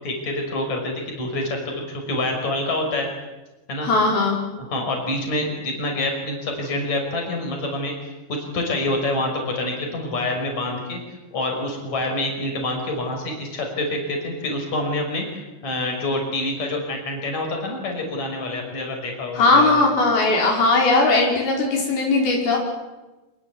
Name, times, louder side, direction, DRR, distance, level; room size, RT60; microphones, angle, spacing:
voice 1, 0.0-3.1 3.7-3.9 4.6-7.9 8.3-11.0 11.3-19.8, left 2 dB, 45° left, 2 dB, 7.0 m, -27 dB
voice 2, 3.8-4.3 19.3-22.6, left 3 dB, 75° left, 0 dB, 6.6 m, -18 dB
27.0 x 22.5 x 8.5 m, 1.1 s
omnidirectional pair, 4.4 m